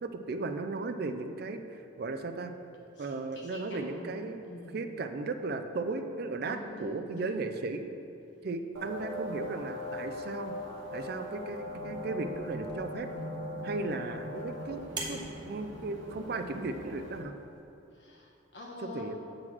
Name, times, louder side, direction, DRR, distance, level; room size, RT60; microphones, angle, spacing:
voice 1, 0.0-2.5 3.0-4.4 4.7-7.8 8.4-10.5 10.9-13.1 13.6-17.3 18.8-19.2, right 3 dB, 50° right, 8 dB, 0.4 m, -36 dB
voice 2, 2.9-4.9 6.4-7.5 17.9-19.2, left 1 dB, 60° left, -2 dB, 1.3 m, -46 dB
sound 1, 8.7-17.2, left 1 dB, 75° right, 1.0 m, -40 dB
sound 2, 12.6-17.6, right 2 dB, 25° right, 0.9 m, -46 dB
7.7 x 3.8 x 6.1 m, 2.8 s
head